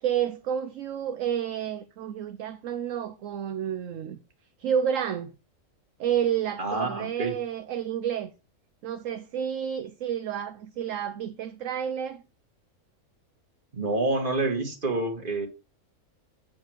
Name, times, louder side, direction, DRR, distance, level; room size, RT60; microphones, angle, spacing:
voice 1, 0.0-4.2 4.6-5.3 6.0-8.3 8.8-12.2, right 9 dB, 65° right, 1.0 m, -30 dB
voice 2, 6.6-7.3 13.7-15.5, right 2 dB, 35° right, 2.1 m, -27 dB
8.6 x 6.2 x 4.8 m
omnidirectional pair, 1.5 m